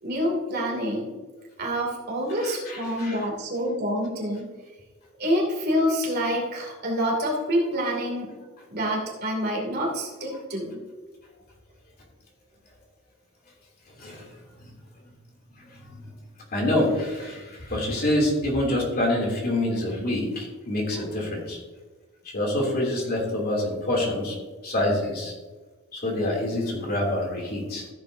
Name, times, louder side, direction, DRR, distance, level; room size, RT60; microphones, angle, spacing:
voice 1, 0.0-1.1 1.6-4.5 5.2-8.3 8.7-10.8, equal, 50° right, -1 dB, 2.6 m, -27 dB
voice 2, 2.4-3.2 14.0-14.3 15.9-16.0 16.5-21.6 22.3-24.3 24.6-25.3 25.9-27.8, left 1 dB, 45° left, -2 dB, 2.9 m, -26 dB
14.5 x 8.2 x 2.7 m, 1.3 s
head